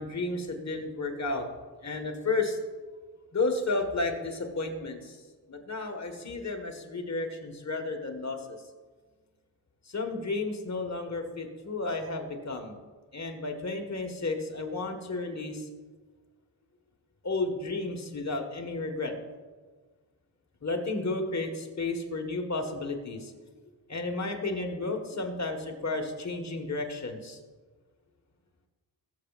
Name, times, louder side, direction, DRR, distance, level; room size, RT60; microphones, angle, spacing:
voice 1, 0.0-1.5 1.8-2.6 3.3-5.2 5.5-8.6 9.9-12.7 13.1-15.7 17.2-19.1 20.6-23.3 23.9-27.4, left 3 dB, 40° left, 4 dB, 1.6 m, -32 dB
19.0 x 7.2 x 2.5 m, 1.4 s
cardioid pair, 55°, 42 cm